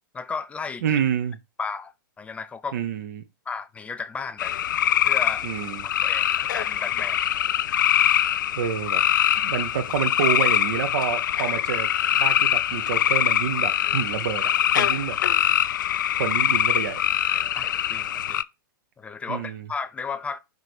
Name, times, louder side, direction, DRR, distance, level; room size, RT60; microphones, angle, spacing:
voice 1, 0.1-0.8 1.6-1.9 2.2-2.8 3.5-4.5 5.0-5.4 5.8-7.2 17.5-18.4 19.0-20.4, left 5 dB, 10° left, 0.6 m, -34 dB
voice 2, 0.8-1.4 2.7-3.2 5.4-5.8 8.5-9.0 9.4-11.9 12.1-15.5 16.2-17.0 19.3-19.7, right 8 dB, 60° right, 1.2 m, -28 dB
sound 1, 4.4-18.4, left 11 dB, 65° left, 0.4 m, -23 dB
5.0 x 4.1 x 4.7 m
figure-of-eight pair, 105°, 11 cm